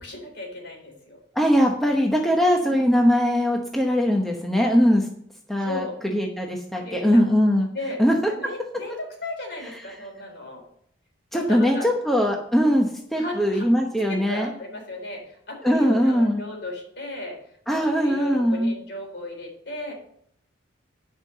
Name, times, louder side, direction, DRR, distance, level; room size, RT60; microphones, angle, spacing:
voice 1, 0.0-1.2 2.6-2.8 5.6-6.0 6.7-7.3 7.7-8.0 8.3-10.6 11.3-11.9 13.2-13.7 14.1-17.4 17.7-19.9, left 2 dB, 55° left, 0 dB, 3.8 m, -35 dB
voice 2, 1.3-5.1 5.5-7.7 8.0-8.3 11.3-14.5 15.6-16.4 17.7-18.7, equal, ahead, 0 dB, 0.9 m, -21 dB
10.5 x 5.6 x 6.6 m, 0.68 s
head